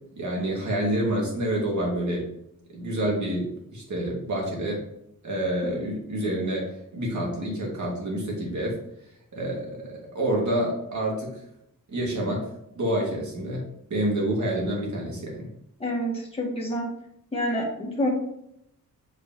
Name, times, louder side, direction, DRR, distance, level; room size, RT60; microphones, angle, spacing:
voice 1, 0.2-2.3 2.7-4.8 5.2-8.8 9.3-11.4 11.9-12.5 12.8-13.7 13.9-15.5, right 1 dB, 60° right, -2 dB, 2.0 m, -28 dB
voice 2, 15.8-16.9 17.3-18.1, equal, 15° left, -3 dB, 1.5 m, -27 dB
7.8 x 4.8 x 2.9 m, 0.77 s
wide cardioid pair, 180°, 34 cm